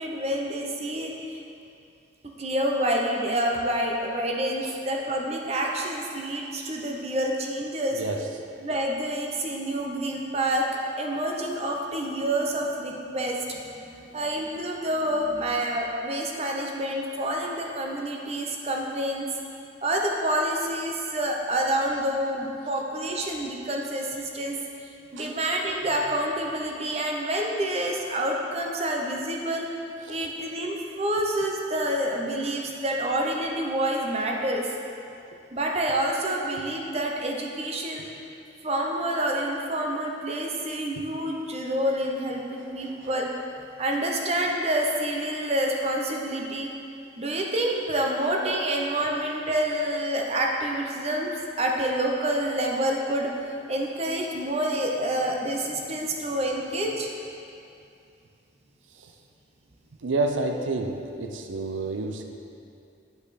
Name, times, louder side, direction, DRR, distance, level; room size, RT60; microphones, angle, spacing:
voice 1, 0.0-1.4 2.4-8.0 8.6-10.7 11.0-19.3 19.8-24.6 25.1-29.7 30.1-34.7 35.5-38.1 38.6-43.3 43.8-46.7 47.2-51.3 51.6-53.3 53.7-57.1, right 1 dB, 35° right, 0 dB, 0.8 m, -28 dB
voice 2, 7.9-8.3 25.1-25.3 30.1-30.3 42.6-43.1 59.0-59.1 60.0-62.2, right 3 dB, 80° right, 4 dB, 0.5 m, -30 dB
8.4 x 5.4 x 4.1 m, 2.6 s
head